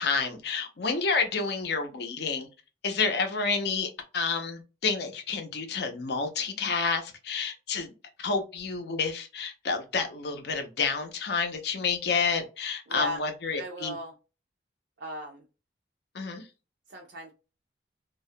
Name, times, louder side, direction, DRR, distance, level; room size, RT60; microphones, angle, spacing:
voice 1, 0.0-2.5 2.8-7.9 8.2-14.0 16.1-16.4, left 5 dB, 65° left, 6 dB, 0.5 m, -29 dB
voice 2, 12.9-13.2 13.6-14.1 15.0-15.4 16.9-17.3, left 1 dB, 80° right, 0 dB, 0.5 m, -36 dB
2.2 x 2.1 x 2.6 m, 0.31 s
head